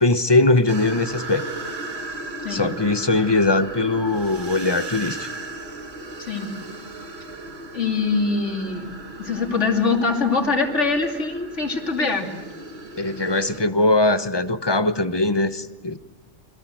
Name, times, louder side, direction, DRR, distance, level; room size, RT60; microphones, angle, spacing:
voice 1, 0.0-1.4 2.5-5.3 13.0-16.0, left 2 dB, 25° left, 11 dB, 1.0 m, -20 dB
sound 1, 0.7-13.6, right 2 dB, 60° right, 2.3 m, -36 dB
voice 2, 6.2-6.5 7.7-8.9 9.2-12.3, left 4 dB, 80° left, 3 dB, 3.2 m, -23 dB
28.5 x 23.0 x 7.8 m, 1.2 s
omnidirectional pair, 1.2 m